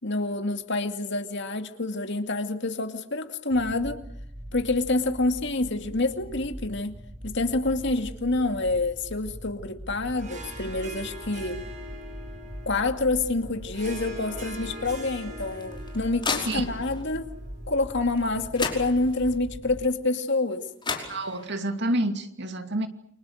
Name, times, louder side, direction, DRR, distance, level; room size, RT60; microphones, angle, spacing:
voice 1, 0.0-4.0 4.5-7.0 7.2-11.6 12.7-17.3 17.7-20.7, left 2 dB, 65° left, 2.4 m, -27 dB
sound 1, 3.5-19.9, equal, 25° right, 1.7 m, -41 dB
Harp, 10.1-18.7, right 1 dB, 40° right, 6.8 m, -43 dB
sound 2, 15.4-17.0 18.2-18.3 18.5-19.4 20.5-20.6 20.8-21.7, left 4 dB, 25° left, 5.2 m, -33 dB
voice 2, 21.1-22.9, right 1 dB, 60° right, 2.5 m, -28 dB
29.0 x 25.0 x 6.5 m
head